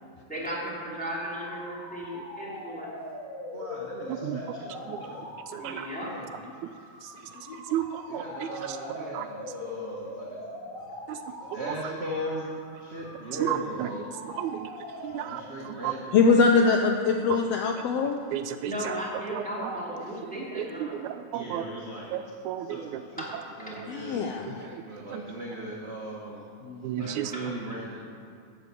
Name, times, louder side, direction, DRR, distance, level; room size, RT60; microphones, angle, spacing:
voice 1, 0.3-2.9 5.6-6.1 18.6-21.0 23.2-23.4 27.0-27.5, equal, 5° left, -6 dB, 2.8 m, -35 dB
sound 1, 1.0-15.7, left 1 dB, 50° left, 5.0 m, -42 dB
voice 2, 3.5-5.2 6.0-6.3 8.1-11.0 11.4-14.0 15.2-16.2 21.3-22.2 22.7-24.2 24.8-26.5 27.0-28.0, right 1 dB, 40° right, -4 dB, 0.9 m, -38 dB
voice 3, 4.1-4.4 4.9-5.0 5.5-5.9 7.0-7.1 7.7-9.3 11.1-11.2 11.6-11.8 13.4-13.9 14.2-14.7 15.0-15.9 17.3-17.4 18.3-19.0 19.3-19.8 20.2-21.7 22.1-23.0 24.6-24.8 25.1-25.3 26.8-27.3, right 11 dB, 80° right, 9 dB, 1.9 m, -33 dB
voice 4, 16.1-18.2 23.9-24.8 26.7-27.0, left 4 dB, 75° left, 3 dB, 1.5 m, -23 dB
12.0 x 7.6 x 8.4 m, 2.4 s
omnidirectional pair, 3.5 m